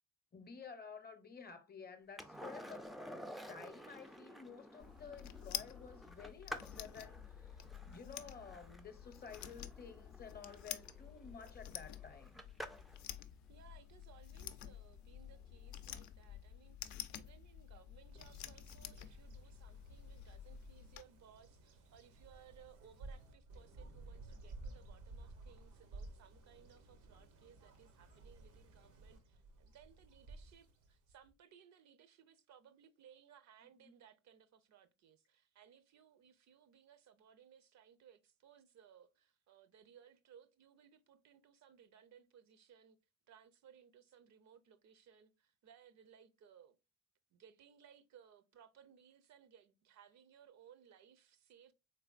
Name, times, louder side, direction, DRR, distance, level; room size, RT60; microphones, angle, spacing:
voice 1, 0.3-3.0 3.5-7.6 7.9-12.4 33.8-34.0, left 6 dB, 30° left, 0.7 m, -53 dB
Skateboard, 2.2-13.0 15.6-15.7, equal, ahead, 0.3 m, -52 dB
sound 1, 4.8-21.0, left 11 dB, 70° left, 0.5 m, -50 dB
voice 2, 13.5-43.0 43.3-46.8 47.3-51.7, right 8 dB, 60° right, 0.5 m, -63 dB
Bird vocalization bird call bird song, 18.1-31.3, right 2 dB, 85° right, 0.8 m, -55 dB
3.3 x 3.3 x 2.4 m
cardioid pair, 80°, 31 cm